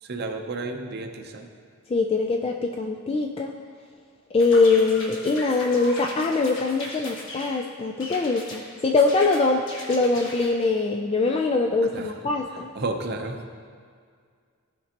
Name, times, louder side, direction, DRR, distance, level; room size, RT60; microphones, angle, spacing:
voice 1, 0.0-1.5 11.9-12.2 12.5-13.5, right 2 dB, 50° right, 4 dB, 0.7 m, -32 dB
voice 2, 1.9-3.5 4.3-12.7, left 3 dB, 25° left, 2 dB, 0.3 m, -23 dB
sound 1, 4.4-7.6 8.0-8.6 9.0-10.5, left 1 dB, 60° left, 1.4 m, -38 dB
15.0 x 5.3 x 2.9 m, 2.1 s
head